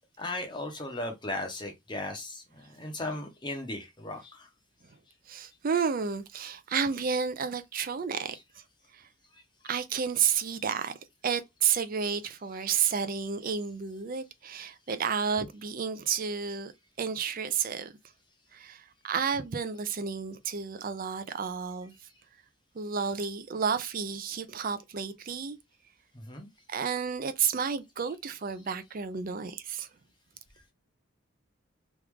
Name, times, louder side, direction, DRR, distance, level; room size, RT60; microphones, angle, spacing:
voice 1, 0.2-4.5 8.3-8.4 9.7-9.8 10.6-10.7 26.1-26.5 26.8-26.9, left 2 dB, 20° left, 0.7 m, -37 dB
voice 2, 5.3-8.4 8.9-9.1 9.6-11.0 11.2-16.7 17.0-17.9 18.5-21.9 22.7-25.6 26.7-29.9, right 6 dB, 40° right, 0.4 m, -31 dB
3.1 x 2.4 x 3.4 m
head